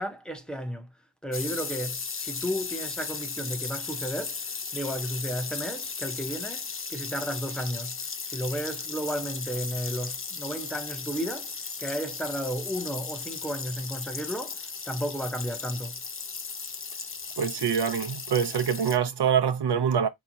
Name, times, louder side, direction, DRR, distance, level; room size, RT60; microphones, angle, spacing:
voice 1, 0.0-16.0, equal, ahead, 0.8 m, -33 dB
sound 1, 1.3-19.0, left 5 dB, 30° left, 0.6 m, -36 dB
voice 2, 17.4-20.1, right 7 dB, 70° right, 0.8 m, -25 dB
4.8 x 3.0 x 2.7 m
wide cardioid pair, 90°, 42 cm